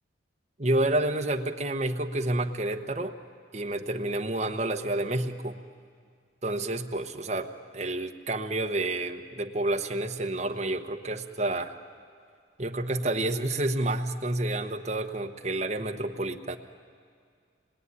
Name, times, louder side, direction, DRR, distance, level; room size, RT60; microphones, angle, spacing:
voice 1, 0.6-3.2 3.5-5.6 6.4-11.7 12.6-16.6, right 2 dB, 35° right, 4 dB, 1.1 m, -29 dB
26.5 x 20.5 x 9.7 m, 2.2 s
head